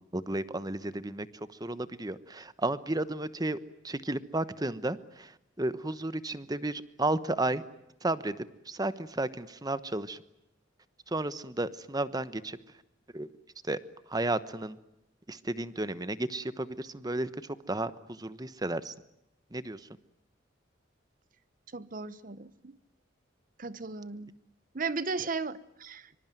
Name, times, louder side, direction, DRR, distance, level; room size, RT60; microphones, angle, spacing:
voice 1, 0.1-1.3 1.6-3.6 3.8-7.6 8.0-10.2 11.1-12.6 13.1-13.3 13.7-13.8 14.1-14.8 15.3-17.3 17.7-18.9 19.5-19.8, right 2 dB, 20° right, 1.1 m, -33 dB
voice 2, 21.7-22.8 23.6-24.3 24.7-26.1, right 4 dB, 45° right, 1.0 m, -36 dB
25.0 x 24.5 x 9.2 m
head